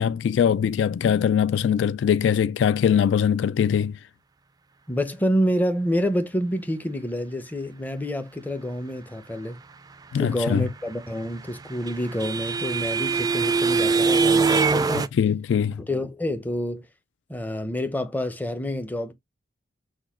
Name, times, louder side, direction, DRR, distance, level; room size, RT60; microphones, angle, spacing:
voice 1, 0.0-3.9 10.1-10.6 15.2-15.8, left 8 dB, 70° left, 0.3 m, -22 dB
voice 2, 4.9-9.6 10.2-15.1 15.8-16.9 17.3-19.1, equal, 10° left, 0.7 m, -28 dB
sound 1, 11.2-15.1, right 4 dB, 20° right, 0.3 m, -22 dB
6.2 x 2.2 x 3.6 m
head